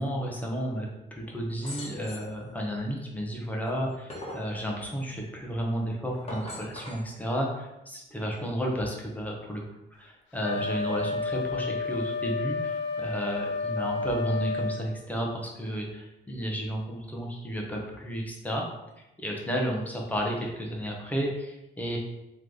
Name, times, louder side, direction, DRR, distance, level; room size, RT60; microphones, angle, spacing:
voice 1, 0.0-9.6 9.9-18.6 19.0-22.0, equal, 10° left, -1 dB, 1.0 m, -32 dB
sound 1, 1.6-2.4 3.7-4.5 6.1-7.1, left 1 dB, 30° left, 1.3 m, -40 dB
Wind instrument woodwind instrument, 10.4-14.9, left 4 dB, 75° left, 0.5 m, -31 dB
3.2 x 3.2 x 3.9 m, 0.94 s
cardioid pair, 90°, 20 cm